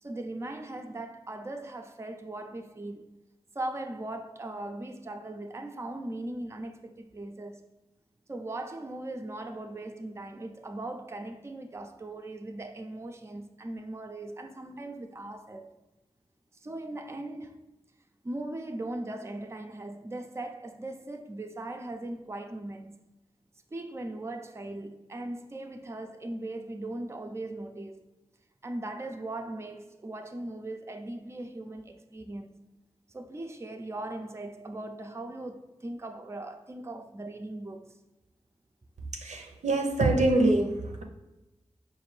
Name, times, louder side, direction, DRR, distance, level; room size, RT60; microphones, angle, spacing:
voice 1, 0.0-3.2 3.5-7.6 8.3-15.7 16.6-17.7 18.2-23.0 23.7-28.0 28.6-32.6 33.1-37.9, right 2 dB, 25° right, 0.4 m, -39 dB
voice 2, 39.1-41.0, right 2 dB, 85° right, 0.5 m, -25 dB
4.9 x 2.5 x 3.1 m
cardioid pair, 50°, 12 cm